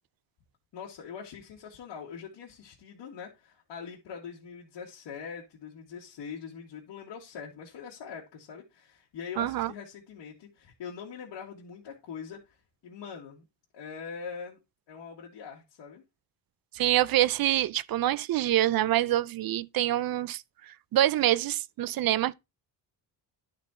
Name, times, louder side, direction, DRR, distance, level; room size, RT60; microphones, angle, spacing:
voice 1, 0.7-12.6 12.8-13.4 13.7-14.6 14.9-16.0, left 6 dB, 85° left, 1.9 m, -43 dB
voice 2, 9.4-9.7 16.7-20.4 20.9-22.3, right 13 dB, 55° right, 0.5 m, -25 dB
11.0 x 4.2 x 4.3 m
cardioid pair, 125°, 43 cm